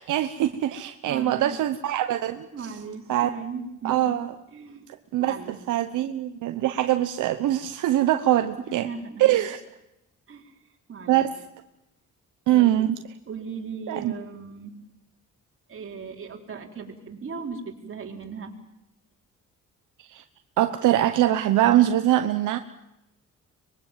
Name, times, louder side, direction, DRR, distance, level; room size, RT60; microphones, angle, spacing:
voice 1, 0.0-2.5 3.1-3.3 3.8-4.3 5.1-8.9 9.2-9.6 11.1-11.3 12.5-13.0 13.9-14.1 20.1-20.2 20.6-22.6, right 13 dB, 85° right, 8 dB, 1.1 m, -23 dB
voice 2, 1.1-1.6 2.5-4.1 4.5-4.8 5.2-5.6 6.7-7.0 8.6-9.3 10.3-10.5 10.9-11.2 12.5-12.8 13.3-14.8 15.7-18.5, right 5 dB, 45° right, 1 dB, 4.3 m, -37 dB
24.5 x 22.0 x 7.5 m, 0.87 s
cardioid pair, 90°, 30 cm